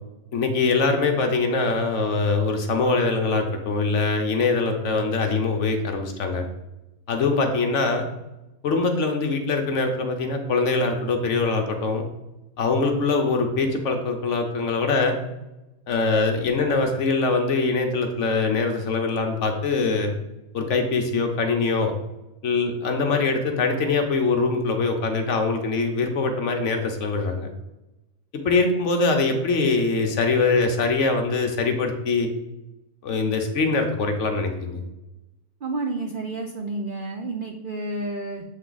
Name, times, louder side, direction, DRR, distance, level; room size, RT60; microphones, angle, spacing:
voice 1, 0.3-6.5 7.1-8.0 8.6-12.0 12.6-15.1 15.9-20.1 20.5-21.9 22.4-27.5 28.3-32.3 33.0-34.8, left 3 dB, 60° left, 4 dB, 0.9 m, -23 dB
voice 2, 35.6-38.4, right 2 dB, 75° right, 3 dB, 0.4 m, -30 dB
7.5 x 3.5 x 3.9 m, 1.0 s
omnidirectional pair, 1.6 m